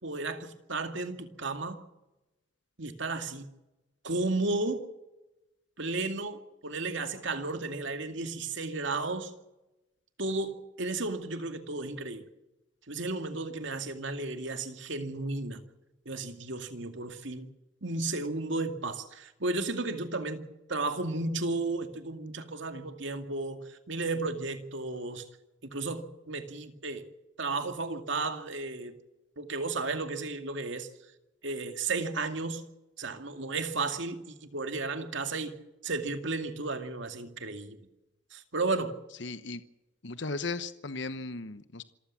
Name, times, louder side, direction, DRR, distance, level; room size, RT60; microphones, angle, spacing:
voice 1, 0.0-1.8 2.8-3.5 4.0-4.8 5.8-9.3 10.2-12.2 12.9-15.6 16.1-17.5 17.8-25.2 25.7-27.1 27.4-28.9 29.4-30.9 31.4-32.6 33.0-35.6 35.8-37.8 38.3-38.9, right 3 dB, 70° right, 2.3 m, -33 dB
voice 2, 39.2-39.6 40.0-41.8, left 3 dB, 65° left, 1.0 m, -36 dB
26.5 x 14.5 x 7.4 m
head